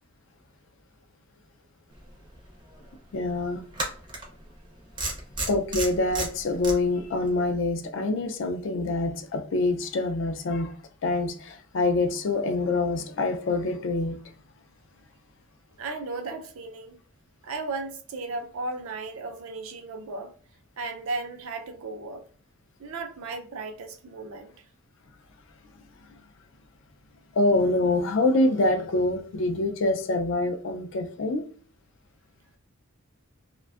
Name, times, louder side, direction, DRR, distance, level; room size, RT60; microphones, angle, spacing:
sound 1, 2.3-2.4 3.7-4.2 5.0-6.7, right 2 dB, 20° right, 0.5 m, -31 dB
voice 1, 3.1-3.7 5.5-10.7 11.0-14.2 27.3-31.4, left 2 dB, 55° left, 0.3 m, -25 dB
voice 2, 15.8-17.0 17.4-20.3 20.8-22.2 22.8-24.5, right 3 dB, 75° right, 0.4 m, -35 dB
2.5 x 2.2 x 2.3 m
head